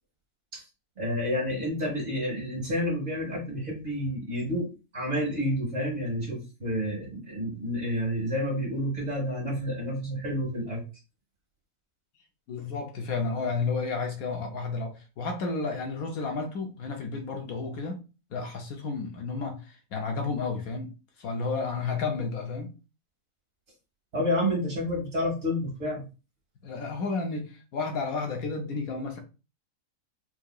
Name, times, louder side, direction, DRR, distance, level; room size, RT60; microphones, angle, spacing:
voice 1, 1.0-10.8 24.1-26.1, equal, 45° right, 1.7 m, -29 dB
voice 2, 12.5-18.0 18.3-20.9 21.2-22.7 26.6-29.2, left 4 dB, 70° left, 1.1 m, -32 dB
4.7 x 2.8 x 2.3 m
omnidirectional pair, 1.7 m